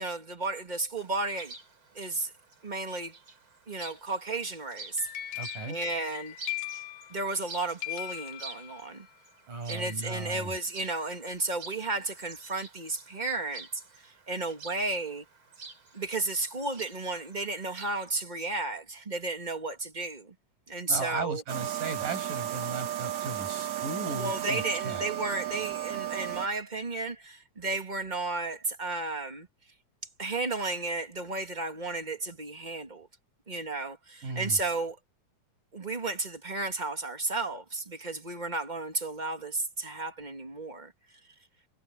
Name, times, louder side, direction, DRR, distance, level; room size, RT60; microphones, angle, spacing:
voice 1, 0.0-1.5 1.9-2.3 2.6-3.2 3.7-5.1 5.7-6.4 7.1-9.1 9.7-15.2 15.9-20.3 20.7-21.4 24.1-29.5 30.2-33.1 33.5-35.0 35.7-40.9, right 3 dB, 15° right, 1.8 m, -33 dB
Chirp tweet, 1.0-18.1, right 3 dB, 40° right, 4.6 m, -49 dB
sound 1, 4.7-7.5 7.8-9.1, left 16 dB, 65° left, 1.4 m, -39 dB
voice 2, 5.4-5.8 9.5-10.5 20.9-25.1 34.2-34.6, right 3 dB, 80° right, 8.5 m, -36 dB
sound 2, 21.5-26.5, right 12 dB, 60° right, 2.6 m, -34 dB
omnidirectional pair, 3.8 m